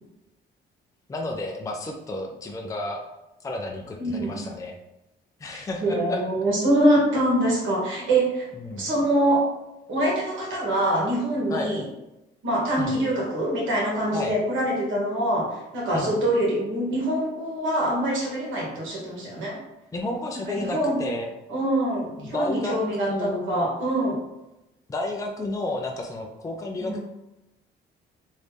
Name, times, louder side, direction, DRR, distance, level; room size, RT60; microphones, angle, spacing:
voice 1, 1.1-3.1 3.4-4.8 5.4-6.2 8.6-8.9 11.5-11.7 12.8-13.0 14.1-14.3 15.9-16.1 19.9-21.3 22.2-22.8 23.0-23.7 24.9-27.0, left 2 dB, 15° left, 1 dB, 0.5 m, -31 dB
voice 2, 4.0-4.4 5.7-8.5 8.8-9.5 9.9-11.8 12.4-19.6 20.5-21.0 21.5-24.2 26.8-27.0, right 1 dB, 80° right, -3 dB, 1.5 m, -24 dB
3.1 x 2.7 x 3.4 m, 0.92 s
cardioid pair, 90°, 20 cm